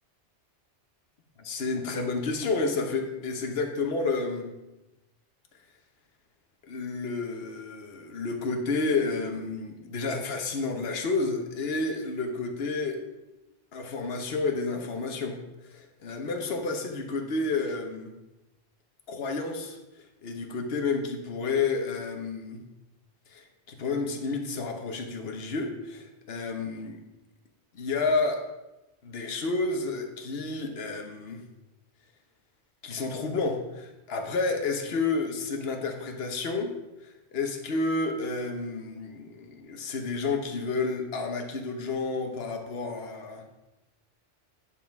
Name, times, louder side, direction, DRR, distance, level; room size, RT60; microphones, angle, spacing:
voice 1, 1.4-4.5 6.6-13.0 13.7-15.4 15.6-18.1 19.1-22.6 23.3-27.0 27.7-28.4 29.0-31.4 32.8-36.7 37.0-43.4, left 3 dB, 55° left, 3 dB, 1.3 m, -30 dB
9.8 x 5.7 x 4.6 m, 1.0 s
omnidirectional pair, 1.2 m